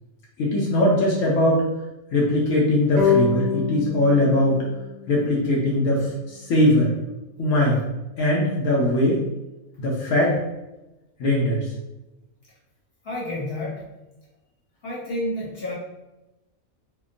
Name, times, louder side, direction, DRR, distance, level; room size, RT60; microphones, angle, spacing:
voice 1, 0.4-1.6 2.1-4.6 5.1-6.9 7.4-7.8 8.2-9.2 9.8-10.4 11.2-11.6, left 1 dB, 75° left, -4 dB, 1.0 m, -20 dB
sound 1, 3.0-6.2, left 5 dB, 65° right, 0.6 m, -26 dB
voice 2, 13.0-13.8 14.8-15.7, left 1 dB, 50° left, -6 dB, 0.9 m, -29 dB
2.8 x 2.1 x 2.4 m, 1.0 s
omnidirectional pair, 1.5 m